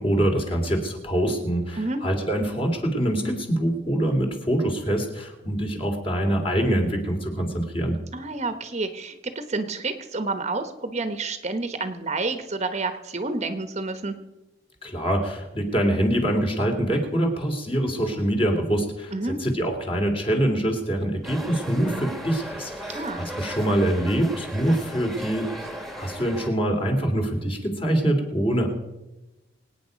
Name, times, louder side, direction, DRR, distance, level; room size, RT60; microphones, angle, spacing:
voice 1, 0.0-8.0 14.8-25.5 26.0-28.7, right 1 dB, 30° left, 3 dB, 2.8 m, -24 dB
voice 2, 8.1-14.1 19.1-19.4 22.9-23.3, right 3 dB, 35° right, 9 dB, 1.1 m, -29 dB
sound 1, 21.2-26.5, equal, ahead, 1.7 m, -36 dB
24.5 x 9.3 x 5.2 m, 1.0 s
head